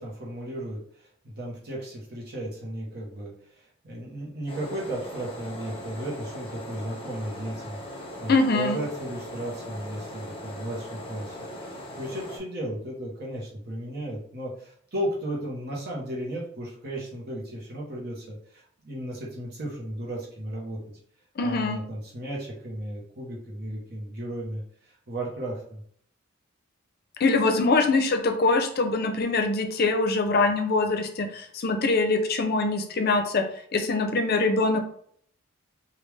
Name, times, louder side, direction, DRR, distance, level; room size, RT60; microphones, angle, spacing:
voice 1, 0.0-7.8 8.2-20.8 21.4-25.8, right 1 dB, 55° right, -4 dB, 0.9 m, -35 dB
sound 1, 4.5-12.4, equal, 25° left, 0.9 m, -40 dB
voice 2, 8.3-8.8 21.4-21.8 27.2-33.4 33.7-34.8, left 3 dB, 50° left, 5 dB, 0.5 m, -23 dB
3.3 x 2.3 x 3.2 m, 0.63 s
head